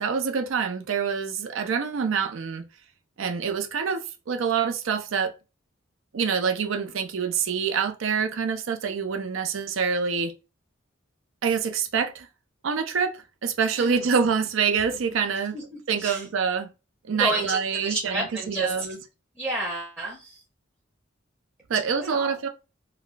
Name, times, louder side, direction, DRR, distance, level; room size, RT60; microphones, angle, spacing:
voice 1, 0.0-2.7 3.2-5.3 6.1-10.3 11.4-12.3 12.6-15.6 15.9-16.7 17.0-19.0 21.7-22.5, right 6 dB, 80° right, 0.5 m, -26 dB
voice 2, 15.5-16.2 17.1-18.7 19.4-20.4 22.0-22.4, right 2 dB, 10° right, 0.6 m, -31 dB
2.2 x 2.1 x 3.8 m
head